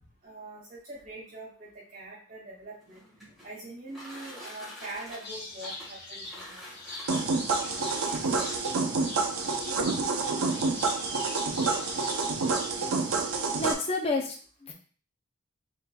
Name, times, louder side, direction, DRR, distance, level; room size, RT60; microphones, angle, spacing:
voice 1, 0.2-3.0 3.4-6.6, right 2 dB, 40° right, -6 dB, 2.1 m, -43 dB
sound 1, 2.7-8.9 9.8-9.9 10.3-10.4 10.7-11.1, equal, ahead, 1.5 m, -47 dB
sound 2, 5.2-13.0, left 2 dB, 45° left, 1.9 m, -42 dB
sound 3, 7.1-13.7, right 4 dB, 90° right, 0.6 m, -28 dB
voice 2, 13.6-14.7, left 2 dB, 30° left, 0 dB, 0.6 m, -30 dB
4.3 x 3.8 x 2.3 m, 0.41 s
head